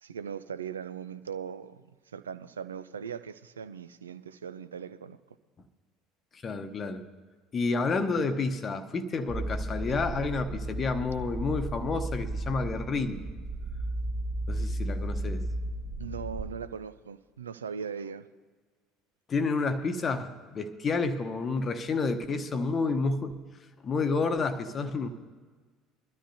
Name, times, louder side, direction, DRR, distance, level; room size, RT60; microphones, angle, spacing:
voice 1, 0.0-5.2 16.0-18.3, right 7 dB, 80° right, 13 dB, 0.4 m, -39 dB
voice 2, 6.3-7.0 7.5-13.2 14.5-15.4 19.3-23.4 23.8-25.1, left 4 dB, 35° left, 8 dB, 0.9 m, -30 dB
sound 1, 9.3-16.5, right 1 dB, 60° right, 4.8 m, -34 dB
22.0 x 13.0 x 2.7 m, 1.5 s
figure-of-eight pair, 60°, 0 cm